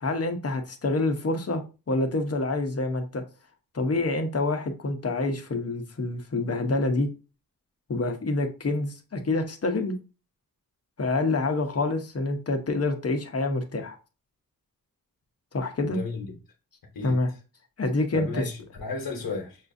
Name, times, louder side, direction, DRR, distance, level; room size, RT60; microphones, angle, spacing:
voice 1, 0.0-1.6 1.9-3.2 3.7-7.1 7.9-9.9 11.0-14.0 15.5-16.0 17.0-17.3 17.8-18.5, left 2 dB, 45° left, 0.8 m, -27 dB
voice 2, 15.8-16.3 16.9-17.1 18.1-19.6, left 3 dB, 75° left, 1.0 m, -33 dB
5.9 x 2.4 x 2.6 m
cardioid pair, 65°, 35 cm